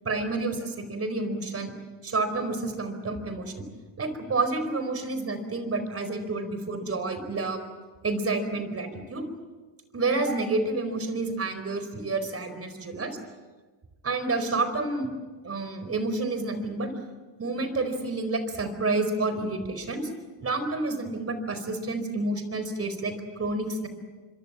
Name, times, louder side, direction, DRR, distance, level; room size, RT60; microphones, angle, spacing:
voice 1, 0.0-1.7 2.0-3.7 4.0-7.6 8.0-9.2 9.9-13.2 14.0-15.1 15.4-16.9 17.4-20.1 20.4-23.9, right 3 dB, 30° right, 9 dB, 4.7 m, -29 dB
26.0 x 24.0 x 7.5 m, 1.3 s
cardioid pair, 105°, 48 cm